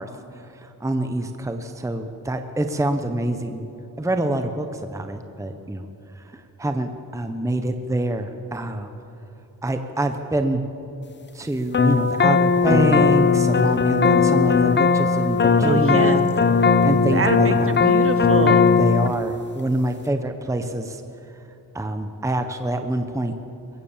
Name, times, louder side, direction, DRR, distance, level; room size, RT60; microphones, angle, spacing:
voice 1, 0.0-3.6 4.0-5.9 6.1-8.9 9.6-10.6 11.3-16.2 16.8-17.7 18.8-21.0 21.7-23.3, right 1 dB, 10° right, 7 dB, 0.9 m, -26 dB
sound 1, 11.7-19.1, left 5 dB, 30° left, 0.7 m, -18 dB
voice 2, 15.6-16.2 17.1-18.7, right 4 dB, 35° right, 9 dB, 1.2 m, -25 dB
22.0 x 17.0 x 7.3 m, 2.8 s
wide cardioid pair, 140°, 37 cm